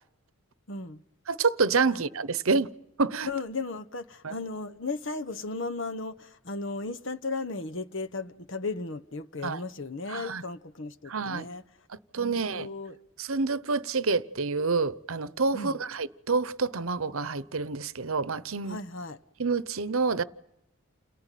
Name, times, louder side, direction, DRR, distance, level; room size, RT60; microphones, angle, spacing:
voice 1, 0.7-1.0 1.9-2.0 3.3-11.6 12.2-13.0 15.5-15.8 18.7-19.2, left 3 dB, 60° left, 1.1 m, -35 dB
voice 2, 1.3-2.7 3.0-3.3 4.2-4.3 9.4-9.6 10.1-10.4 11.1-11.4 11.9-12.7 13.2-18.8 19.4-20.2, right 4 dB, 75° right, 0.9 m, -28 dB
29.5 x 18.5 x 9.2 m
head